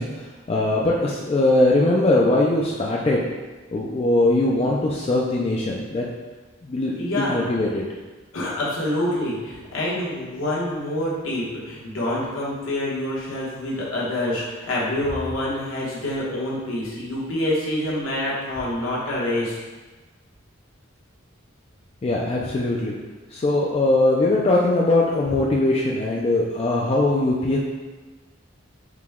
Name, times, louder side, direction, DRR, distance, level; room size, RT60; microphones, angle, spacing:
voice 1, 0.0-3.2 3.7-6.1 6.6-7.8 22.0-23.0 23.3-27.6, left 2 dB, 30° left, -3 dB, 0.3 m, -21 dB
voice 2, 7.0-7.6 8.3-19.6, left 1 dB, 80° left, -6 dB, 1.2 m, -26 dB
4.9 x 2.2 x 3.5 m, 1.3 s
head